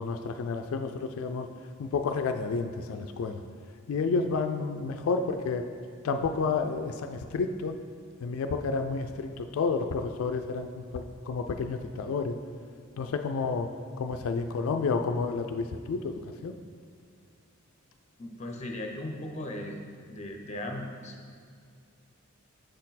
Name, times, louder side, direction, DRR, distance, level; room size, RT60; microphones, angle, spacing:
voice 1, 0.0-1.5 1.8-3.4 3.9-5.6 6.0-7.8 8.2-12.4 13.0-13.7 14.0-16.5, left 4 dB, 90° left, 6 dB, 0.3 m, -30 dB
voice 2, 18.2-19.8 20.1-21.3, left 1 dB, 35° left, 3 dB, 0.6 m, -37 dB
6.4 x 4.3 x 4.0 m, 2.2 s
head